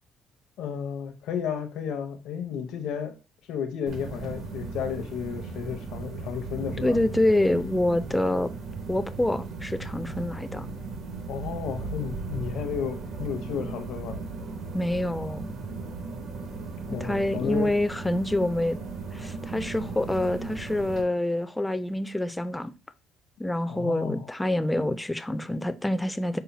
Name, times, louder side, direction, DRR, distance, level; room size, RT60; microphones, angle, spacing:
voice 1, 0.6-3.1 3.5-7.0 11.3-14.2 16.9-17.7 23.7-24.3, left 7 dB, 80° left, 0.8 m, -33 dB
sound 1, 3.9-21.0, right 4 dB, 60° right, 1.0 m, -37 dB
voice 2, 6.8-8.5 8.9-10.7 14.7-15.5 17.0-18.8 19.1-22.7 23.4-26.4, left 1 dB, 10° left, 0.4 m, -26 dB
5.5 x 2.1 x 4.0 m
cardioid pair, 120°, 0 cm